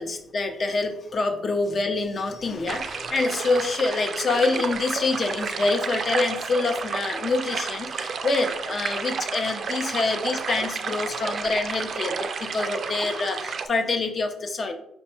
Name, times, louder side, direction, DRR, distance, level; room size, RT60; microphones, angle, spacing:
voice 1, 0.0-14.8, left 3 dB, 45° left, 6 dB, 0.7 m, -26 dB
sound 1, 2.7-13.7, right 5 dB, 50° right, 0.4 m, -31 dB
5.2 x 2.2 x 4.3 m, 0.79 s
cardioid pair, 90°, 0 cm